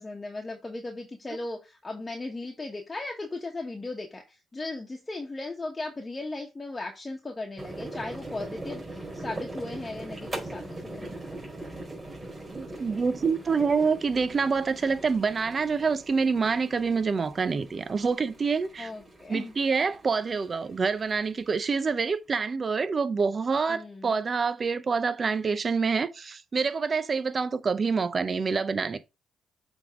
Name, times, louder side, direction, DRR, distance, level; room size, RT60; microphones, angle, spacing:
voice 1, 0.0-11.1 18.8-19.5 23.7-24.2, left 2 dB, 20° left, 1.2 m, -37 dB
sound 1, 7.6-22.1, right 2 dB, 20° right, 4.3 m, -41 dB
voice 2, 12.5-18.9 19.3-29.0, right 5 dB, 40° right, 0.7 m, -27 dB
8.2 x 3.6 x 3.7 m
cardioid pair, 90°, 0 cm